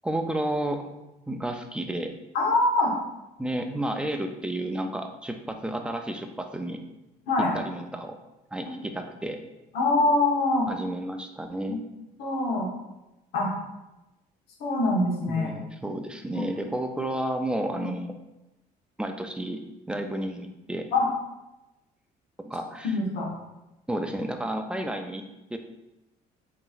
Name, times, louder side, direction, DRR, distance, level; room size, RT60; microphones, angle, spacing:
voice 1, 0.0-0.9 1.3-2.1 3.4-6.8 7.4-8.2 8.5-9.4 10.7-11.8 15.3-18.1 19.0-20.9 22.4-22.9 23.9-25.2 25.5-25.6, right 1 dB, 5° right, 5 dB, 0.4 m, -31 dB
voice 2, 2.3-2.9 7.3-7.5 9.7-10.7 11.7-11.8 12.2-12.7 13.3-13.5 14.6-15.5 16.3-16.5 17.8-17.9 20.9-21.1 22.8-23.3, left 2 dB, 90° left, -3 dB, 1.2 m, -24 dB
4.1 x 3.9 x 2.5 m, 0.97 s
cardioid pair, 110°, 17 cm